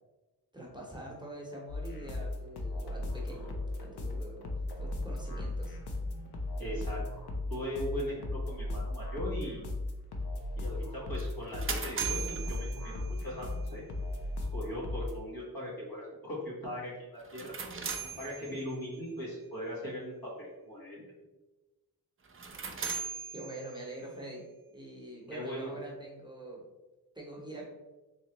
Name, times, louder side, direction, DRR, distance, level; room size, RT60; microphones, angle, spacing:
voice 1, 0.5-3.5 3.8-4.5 4.8-5.8 18.5-18.6 23.3-24.4 24.7-26.6 27.1-27.7, right 1 dB, 10° right, -3 dB, 0.8 m, -45 dB
sound 1, 1.7-15.2, left 2 dB, 80° left, 0.7 m, -36 dB
voice 2, 6.6-7.0 7.5-9.6 10.6-13.8 14.5-17.6 18.2-21.0 25.3-25.7, equal, 65° left, -5 dB, 1.5 m, -39 dB
sound 2, 11.2-13.4 17.2-18.9 22.2-24.0, right 5 dB, 35° right, 0.5 m, -39 dB
3.6 x 3.1 x 2.9 m, 1.1 s
wide cardioid pair, 75°, 39 cm